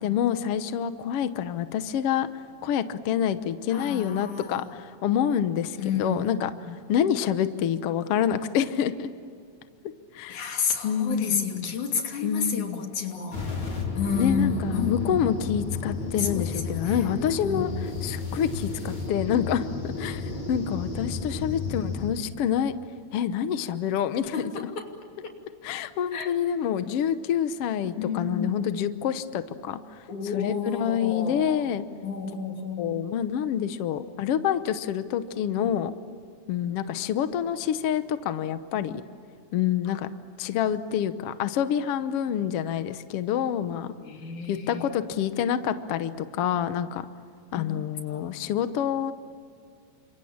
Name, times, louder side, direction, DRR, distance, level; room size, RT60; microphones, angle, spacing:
voice 1, 0.0-2.3 2.6-6.5 6.9-9.1 10.1-10.5 10.8-11.7 12.2-12.8 14.1-22.7 23.1-24.5 25.6-31.8 32.8-35.9 36.5-39.0 39.5-40.1 40.4-43.9 44.5-47.1 47.5-49.1, left 9 dB, 65° left, 11 dB, 1.7 m, -27 dB
voice 2, 3.7-4.6 5.8-6.3 6.6-6.7 10.3-13.4 13.9-15.4 16.2-17.1 17.4-17.7 24.3-24.8 26.1-26.3 28.0-28.8 30.1-31.6 32.0-32.9 39.9-40.0 44.0-44.8 47.5-48.3, left 5 dB, 85° left, 3 dB, 4.3 m, -31 dB
sound 1, 13.3-22.1, left 4 dB, 45° left, 4.9 m, -32 dB
29.5 x 26.5 x 7.3 m, 2.4 s
omnidirectional pair, 3.4 m